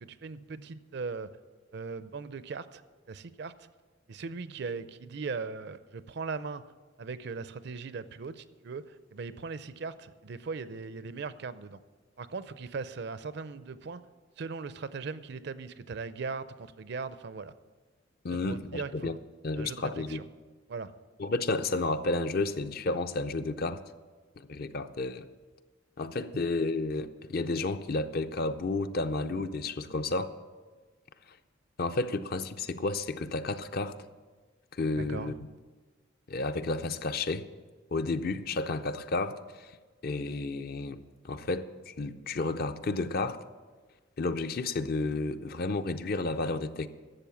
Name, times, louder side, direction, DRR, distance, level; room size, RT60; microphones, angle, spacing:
voice 1, 0.0-1.3 1.7-2.8 3.1-3.5 4.1-6.6 7.0-8.8 9.1-11.8 12.2-14.0 14.4-17.5 18.3-19.2 19.6-20.2 20.7-20.9 35.1-35.3, right 4 dB, 60° right, 0.5 m, -39 dB
voice 2, 18.2-19.2 19.4-20.2 21.2-23.8 24.4-25.3 26.0-30.3 31.8-34.0 34.7-35.3 36.3-37.5 37.9-39.7 40.0-43.4 44.2-46.9, left 3 dB, 50° left, 0.5 m, -31 dB
12.0 x 7.4 x 7.0 m
head